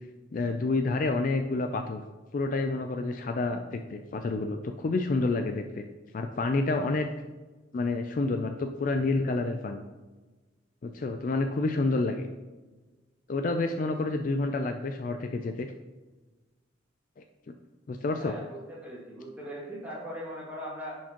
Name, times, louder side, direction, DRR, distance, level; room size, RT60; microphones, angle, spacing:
voice 1, 0.3-2.0 2.3-5.8 6.1-7.1 7.7-9.8 10.8-12.3 13.3-15.7 17.2-17.3 17.9-18.4, left 3 dB, 45° left, 6 dB, 0.3 m, -29 dB
voice 2, 18.2-21.0, equal, 10° right, -7 dB, 2.1 m, -40 dB
10.0 x 4.6 x 2.9 m, 1.2 s
head